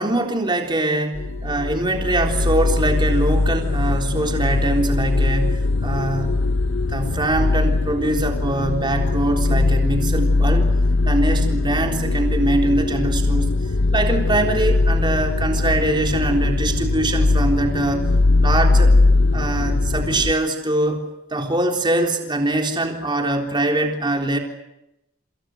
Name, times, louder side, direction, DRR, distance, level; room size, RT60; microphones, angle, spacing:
voice 1, 0.0-6.4 6.8-10.7 11.0-13.5 13.9-18.1 18.4-18.9 19.3-24.4, right 2 dB, 25° right, 3 dB, 3.8 m, -23 dB
sound 1, 1.1-20.3, left 2 dB, 65° left, 0.9 m, -20 dB
28.5 x 27.0 x 6.4 m, 0.88 s
head